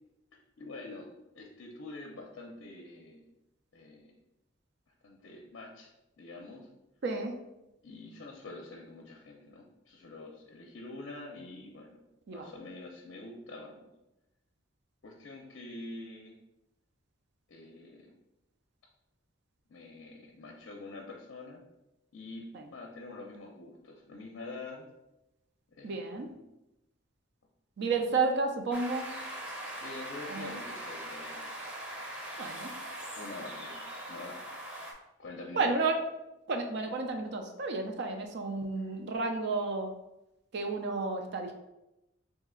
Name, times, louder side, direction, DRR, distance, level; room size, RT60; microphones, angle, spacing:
voice 1, 0.6-1.1 1.3-3.3 3.7-4.1 5.0-5.9 6.2-6.7 7.8-12.0 12.3-13.9 15.0-16.3 17.5-18.1 19.7-21.6 22.1-24.9 25.7-26.5 29.8-31.5 33.1-33.8 34.1-34.4 35.2-35.6 38.8-38.9, left 2 dB, 65° left, 0 dB, 0.5 m, -46 dB
voice 2, 7.0-7.3 12.3-12.5 22.5-22.6 25.8-26.3 27.8-29.1 30.3-30.5 32.4-32.7 35.5-36.0 36.5-39.9 40.5-41.5, right 3 dB, 55° right, 4 dB, 0.4 m, -31 dB
sound 1, 28.7-34.9, right 1 dB, 10° right, 0.6 m, -41 dB
3.1 x 2.8 x 3.7 m, 0.93 s
head